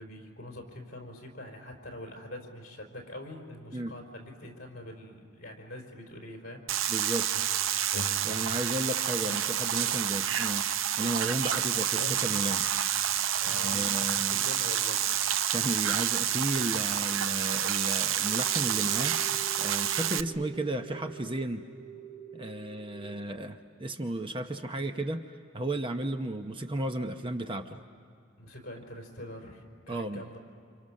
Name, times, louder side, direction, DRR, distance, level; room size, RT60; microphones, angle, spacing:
voice 1, 0.0-6.6 13.3-15.0 28.4-30.4, left 1 dB, 45° left, 1 dB, 4.6 m, -44 dB
sound 1, 6.7-20.2, right 10 dB, 70° right, 0.6 m, -29 dB
voice 2, 6.9-7.5 8.2-12.6 13.5-14.4 15.5-19.2 19.6-21.6 22.3-25.2 25.5-27.8 29.9-30.2, right 1 dB, 25° right, 6 dB, 0.8 m, -34 dB
sound 2, 7.3-8.8 9.3-10.7 11.0-13.5, left 1 dB, 75° left, 1.4 m, -44 dB
sound 3, 18.2-23.2, right 8 dB, 45° right, 2.9 m, -47 dB
29.5 x 27.0 x 6.4 m, 2.5 s
head